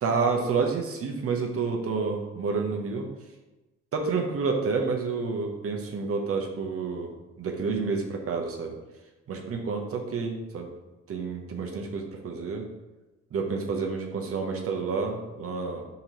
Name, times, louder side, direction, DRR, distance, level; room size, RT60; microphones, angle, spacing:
voice 1, 0.0-3.1 3.9-8.7 9.3-10.7 11.1-12.7 13.3-15.9, right 4 dB, 50° right, 2 dB, 0.7 m, -29 dB
4.4 x 3.9 x 2.8 m, 1.1 s
cardioid pair, 90°, 30 cm